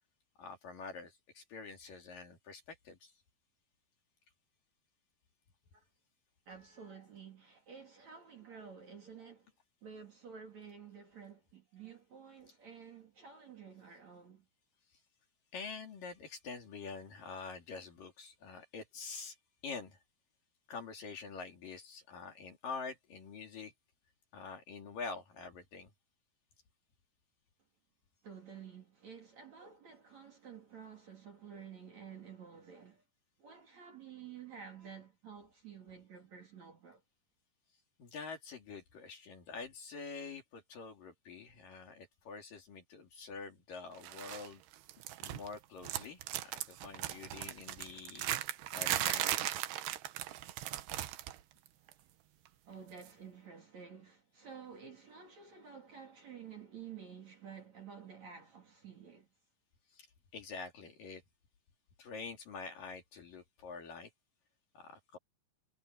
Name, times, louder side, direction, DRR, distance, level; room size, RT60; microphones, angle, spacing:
voice 1, 0.4-3.1 14.9-15.0 15.5-19.4 19.6-20.0 20.7-23.7 24.3-25.9 38.0-44.6 45.2-48.3 48.7-49.4 59.9-60.1 60.3-61.2 62.0-64.1 64.7-65.2, left 4 dB, 50° left, 4.2 m, -46 dB
voice 2, 6.5-9.5 9.8-14.5 28.2-33.0 33.4-37.0 52.7-59.3, right 7 dB, 40° right, 3.5 m, -51 dB
sound 1, 44.0-44.5 44.7-45.6 45.8-51.4 51.7-51.9 53.0-53.1, right 13 dB, 70° right, 2.9 m, -37 dB
omnidirectional pair, 5.4 m